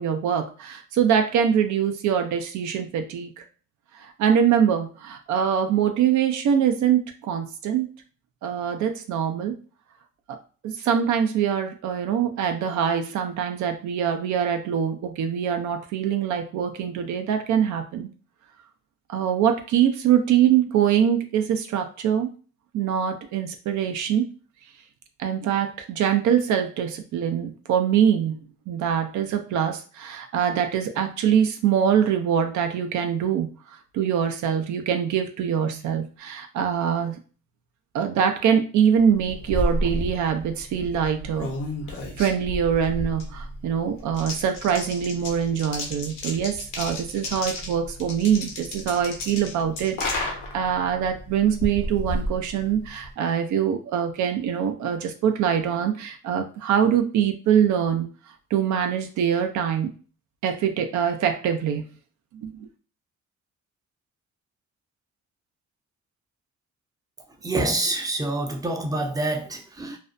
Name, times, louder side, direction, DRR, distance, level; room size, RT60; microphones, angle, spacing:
voice 1, 0.0-3.4 3.9-7.9 8.4-9.6 10.3-10.4 10.6-18.1 19.1-22.3 22.7-24.3 25.2-28.4 28.7-33.5 33.9-37.2 37.9-41.6 42.2-58.1 58.5-59.9 60.4-61.9 62.3-62.7, right 8 dB, 70° right, 6 dB, 0.5 m, -23 dB
sound 1, 39.1-53.1, left 1 dB, 80° left, 0.9 m, -32 dB
voice 2, 67.4-70.0, right 2 dB, 10° right, 3 dB, 0.5 m, -26 dB
2.5 x 2.1 x 2.5 m, 0.38 s
cardioid pair, 90°, 30 cm